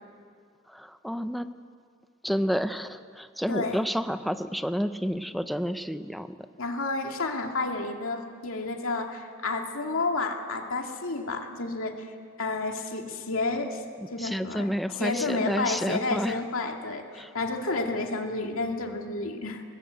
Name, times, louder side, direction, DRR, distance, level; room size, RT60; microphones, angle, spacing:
voice 1, 0.7-1.5 2.2-6.4 14.2-16.4 17.1-17.3, equal, ahead, 9 dB, 0.7 m, -30 dB
voice 2, 6.6-12.1 12.4-13.8 14.1-14.7 15.0-19.6, left 3 dB, 80° left, 2 dB, 2.4 m, -30 dB
21.5 x 21.0 x 8.2 m, 2.2 s
head